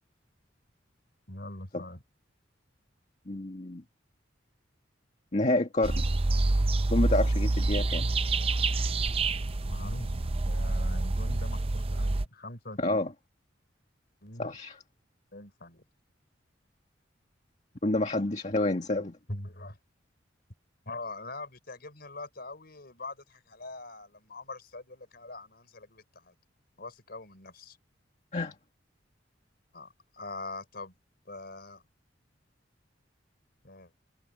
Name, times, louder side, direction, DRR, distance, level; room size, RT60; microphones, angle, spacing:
voice 1, 1.3-2.0 9.6-13.0 14.2-14.5 15.3-15.8 19.3-19.8 20.8-26.3 26.8-27.8 29.7-30.9 31.2-31.8 33.6-33.9, left 2 dB, 55° left, 5.2 m, -43 dB
voice 2, 3.3-3.8 5.3-6.0 6.9-8.1 12.8-13.1 14.4-14.8 17.8-19.2 28.3-28.6, left 2 dB, 40° left, 1.9 m, -28 dB
sound 1, 5.8-12.3, right 2 dB, 30° right, 0.6 m, -27 dB
head